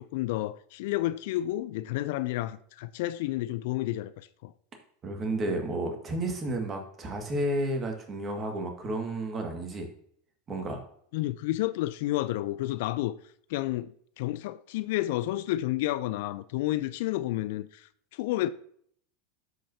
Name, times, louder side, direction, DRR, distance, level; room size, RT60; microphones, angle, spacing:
voice 1, 0.0-4.1 4.4-4.5 11.1-13.2 13.5-13.9 14.2-17.7 18.2-18.5, left 15 dB, 65° left, 0.3 m, -30 dB
voice 2, 5.0-9.9 10.5-10.8, right 1 dB, 30° right, 1.9 m, -31 dB
12.0 x 5.2 x 2.8 m
hypercardioid pair, 90°, 0 cm